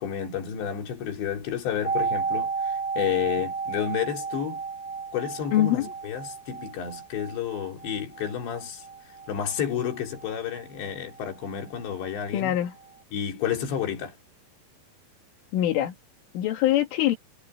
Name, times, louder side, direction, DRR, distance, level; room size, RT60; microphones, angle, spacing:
voice 1, 0.0-4.6 5.1-8.9 9.3-12.6 13.1-14.2, left 9 dB, 65° left, 5.7 m, -31 dB
sound 1, 1.8-11.6 11.8-11.9, right 5 dB, 30° left, 6.2 m, -33 dB
voice 2, 5.5-5.9 12.3-12.7 15.5-15.9 16.3-17.2, left 13 dB, 85° left, 4.7 m, -23 dB
omnidirectional pair, 5.5 m